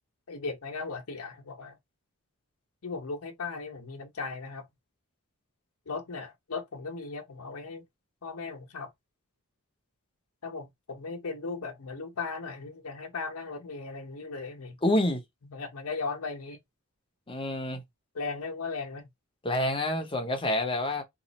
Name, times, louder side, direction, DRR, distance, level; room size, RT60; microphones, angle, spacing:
voice 1, 0.3-1.8 2.8-4.6 5.9-7.8 8.2-8.9 10.4-14.8 15.5-16.6 18.1-19.1, left 4 dB, 70° left, 0.8 m, -37 dB
voice 2, 14.8-15.2 17.3-17.8 19.4-21.0, left 1 dB, 25° left, 0.7 m, -27 dB
3.0 x 2.4 x 4.0 m
head